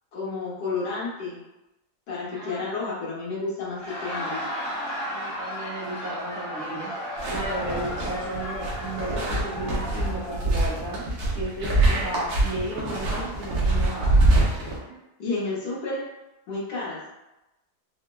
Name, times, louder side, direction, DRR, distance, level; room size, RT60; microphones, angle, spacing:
voice 1, 0.1-1.4 2.1-4.5 7.9-8.0 15.2-16.0 16.5-17.0, left 3 dB, 75° left, -6 dB, 1.5 m, -31 dB
voice 2, 2.3-3.0 5.1-6.9 7.3-11.1 11.3-14.1, right 1 dB, 35° right, -10 dB, 1.0 m, -34 dB
Laughter, 3.7-10.5, equal, 45° left, 0.9 m, -34 dB
sound 1, 7.2-14.8, right 2 dB, 70° right, 1.3 m, -24 dB
4.5 x 2.1 x 2.2 m, 0.97 s
omnidirectional pair, 1.8 m